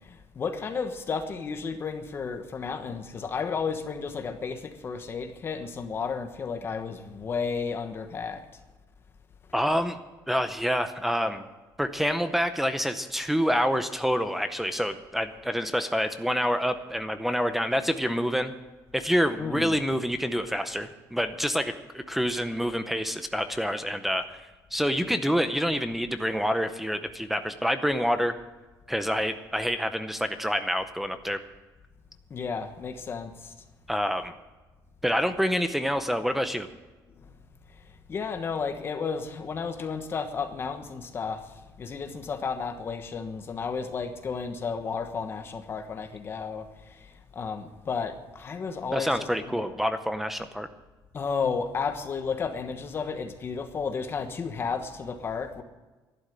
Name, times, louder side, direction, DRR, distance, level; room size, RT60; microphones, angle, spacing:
voice 1, 0.3-8.4 19.4-19.7 32.3-33.5 38.1-41.4 41.8-46.7 47.3-49.6 51.1-55.6, left 5 dB, 30° left, 7 dB, 1.3 m, -32 dB
voice 2, 9.5-10.0 10.3-11.4 11.8-18.5 18.9-24.4 24.7-28.4 28.9-31.4 33.9-34.3 35.0-36.7 48.9-50.7, equal, 5° right, 10 dB, 0.6 m, -27 dB
12.5 x 11.5 x 8.0 m, 1.2 s
cardioid pair, 170°, 8 cm